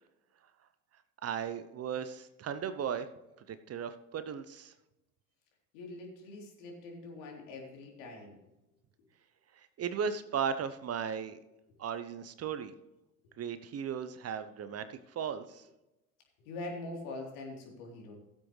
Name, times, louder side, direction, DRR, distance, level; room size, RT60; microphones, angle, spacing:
voice 1, 1.2-3.1 3.5-4.7 9.5-11.4 11.8-12.7 13.4-15.7, right 7 dB, 35° right, 12 dB, 0.9 m, -36 dB
voice 2, 5.7-8.4 16.4-18.1, left 2 dB, 65° left, 0 dB, 3.6 m, -43 dB
16.5 x 7.8 x 3.3 m, 0.94 s
hypercardioid pair, 70°, 43 cm